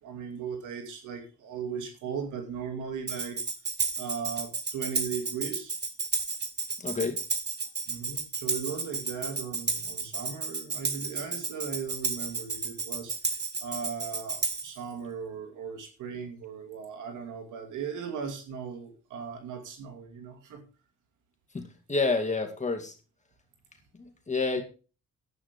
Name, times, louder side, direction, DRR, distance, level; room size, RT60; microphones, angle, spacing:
voice 1, 0.0-3.4 4.0-5.7 7.9-13.1 13.6-20.6, right 6 dB, 80° right, 5 dB, 2.7 m, -37 dB
Tambourine, 3.1-14.8, right 4 dB, 35° right, 1.9 m, -32 dB
voice 2, 6.8-7.2 21.5-21.6 21.9-22.9 24.0-24.6, left 3 dB, 25° left, 4 dB, 2.3 m, -28 dB
11.0 x 8.7 x 5.3 m, 0.34 s
cardioid pair, 90°, 30 cm